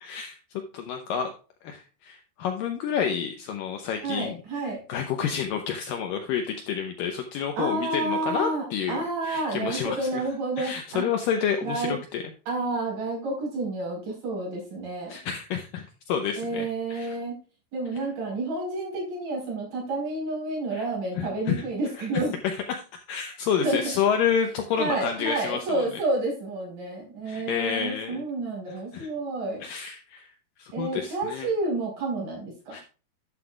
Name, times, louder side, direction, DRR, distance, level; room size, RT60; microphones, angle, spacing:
voice 1, 0.0-0.4 0.7-1.3 1.6-4.4 4.7-10.2 10.6-12.2 15.1-17.2 20.7-20.9 21.2-21.6 22.0-22.1 22.4-25.8 27.3-28.2 28.7-29.1 29.6-30.3 30.6-31.5 32.7-32.8, left 7 dB, 80° left, 4 dB, 2.0 m, -29 dB
voice 2, 4.0-4.8 7.6-11.0 11.6-12.0 12.5-15.2 16.4-17.3 17.7-22.3 23.6-23.9 24.8-29.6 30.7-32.8, right 2 dB, 55° right, -1 dB, 5.9 m, -30 dB
11.5 x 7.8 x 2.4 m, 0.35 s
omnidirectional pair, 4.8 m